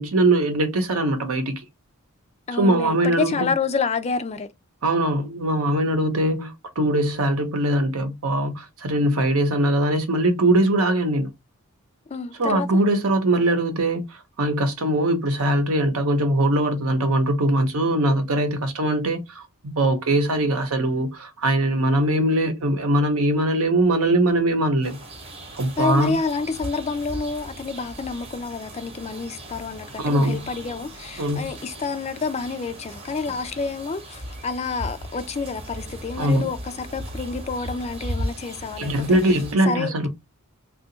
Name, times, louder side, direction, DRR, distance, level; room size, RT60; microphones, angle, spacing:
voice 1, 0.0-1.5 2.5-3.5 4.8-11.3 12.4-14.0 14.4-25.0 25.5-26.2 30.0-30.4 31.2-31.5 36.2-36.5 38.8-40.1, right 1 dB, 75° right, 0.8 m, -21 dB
voice 2, 2.5-4.5 12.1-12.7 25.8-39.4 39.7-40.1, left 4 dB, 30° left, 0.4 m, -28 dB
sound 1, 24.8-39.5, right 1 dB, 25° right, 0.9 m, -37 dB
2.8 x 2.4 x 3.8 m
head